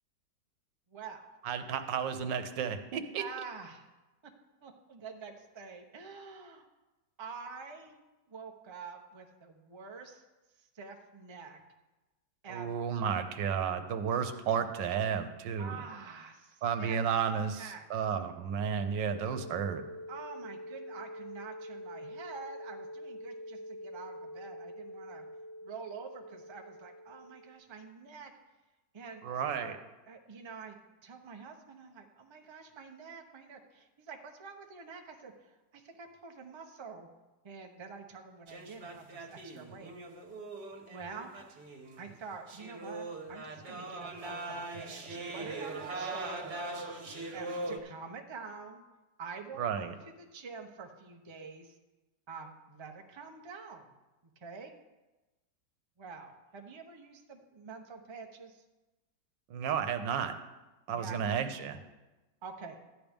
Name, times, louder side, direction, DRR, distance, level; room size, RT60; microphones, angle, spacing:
voice 1, 0.9-1.3 3.2-3.9 4.6-6.7 7.2-8.0 8.3-10.2 10.6-11.6 12.4-12.8 15.6-17.0 17.4-17.8 20.1-25.3 25.6-28.3 28.9-29.2 29.5-29.8 30.1-30.8 31.0-37.1 37.4-39.9 40.9-41.3 42.0-46.6 47.3-48.8 49.2-51.7 52.3-53.9 54.4-54.7 56.0-58.6 60.9-61.3 62.4-62.8, right 5 dB, 25° right, 3 dB, 0.6 m, -47 dB
voice 2, 1.4-3.2 12.5-15.8 16.6-19.8 29.2-29.7 49.6-49.9 59.5-60.4 60.9-61.8, right 7 dB, 85° right, 8 dB, 1.5 m, -32 dB
sound 1, 19.1-27.5, equal, 75° left, 1.3 m, -45 dB
sound 2, 38.5-47.8, right 2 dB, 65° right, 1.7 m, -41 dB
13.5 x 10.0 x 3.6 m, 1.1 s
omnidirectional pair, 1.9 m